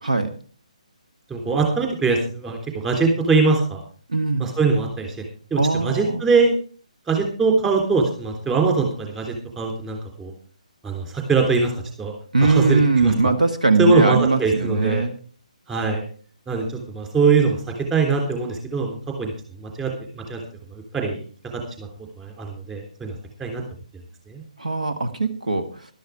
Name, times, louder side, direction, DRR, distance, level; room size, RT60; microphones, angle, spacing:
voice 1, 1.3-3.8 4.4-5.2 5.5-6.5 7.1-10.3 10.8-11.7 12.0-12.1 12.4-13.1 13.8-15.1 15.7-16.0 16.5-17.6 17.9-19.3 19.6-19.9 20.2-20.4 20.7-21.2 21.5-21.9 22.2-23.1 23.4-23.6 24.3-24.4, right 4 dB, 15° right, 2 dB, 3.5 m, -22 dB
voice 2, 4.1-4.5 5.6-6.2 12.3-15.1 24.6-25.9, right 3 dB, 70° right, 7 dB, 1.4 m, -20 dB
12.5 x 12.0 x 4.8 m, 0.43 s
figure-of-eight pair, 140°, 4 cm